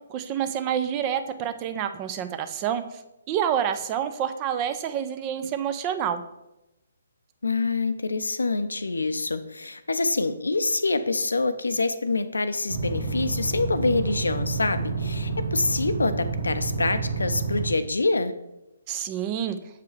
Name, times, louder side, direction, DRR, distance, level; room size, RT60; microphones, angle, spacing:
voice 1, 0.1-2.8 3.3-6.2 18.9-19.6, right 9 dB, 25° right, 10 dB, 0.4 m, -28 dB
voice 2, 7.4-18.3, left 3 dB, 80° left, 11 dB, 0.5 m, -26 dB
sound 1, 12.7-17.7, right 4 dB, 70° right, 1.3 m, -29 dB
7.0 x 4.7 x 3.3 m, 0.93 s
figure-of-eight pair, 140°, 0 cm